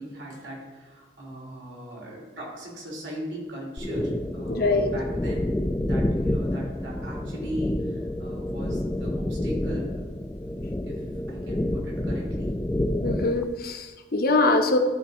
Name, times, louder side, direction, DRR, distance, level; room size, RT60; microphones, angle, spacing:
voice 1, 0.0-10.0 10.5-12.5, equal, 70° right, -3 dB, 2.8 m, -38 dB
sound 1, 3.8-13.4, left 1 dB, 10° left, 0.3 m, -29 dB
voice 2, 4.5-4.9 13.0-14.8, left 2 dB, 55° left, 5 dB, 0.8 m, -23 dB
11.5 x 4.0 x 4.6 m, 1.3 s
head